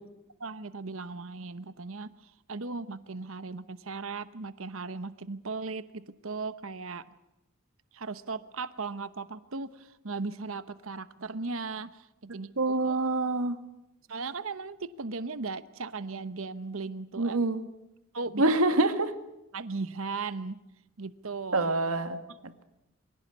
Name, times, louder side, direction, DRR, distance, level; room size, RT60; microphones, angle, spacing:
voice 1, 0.4-7.0 7.9-13.0 14.1-17.4 18.1-18.4 19.5-20.6 21.0-21.7, right 4 dB, 70° right, 14 dB, 1.0 m, -37 dB
voice 2, 12.6-13.6 17.2-17.6 18.4-19.1 21.5-22.6, right 2 dB, 90° right, 8 dB, 2.0 m, -26 dB
24.0 x 16.5 x 9.5 m, 0.90 s
head